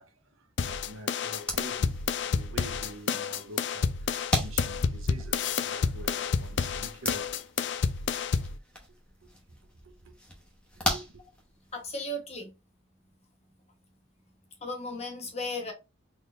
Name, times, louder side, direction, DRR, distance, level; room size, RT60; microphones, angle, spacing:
voice 1, 0.0-7.4 9.2-9.3 9.8-10.1 10.7-11.2, right 1 dB, 90° right, 1.0 m, -46 dB
sound 1, 0.6-8.6, left 6 dB, 60° left, 0.3 m, -29 dB
sound 2, 1.3-11.9, left 1 dB, 5° left, 1.0 m, -39 dB
voice 2, 11.7-12.5 14.6-15.7, left 1 dB, 30° left, 1.1 m, -35 dB
4.0 x 3.2 x 2.5 m
head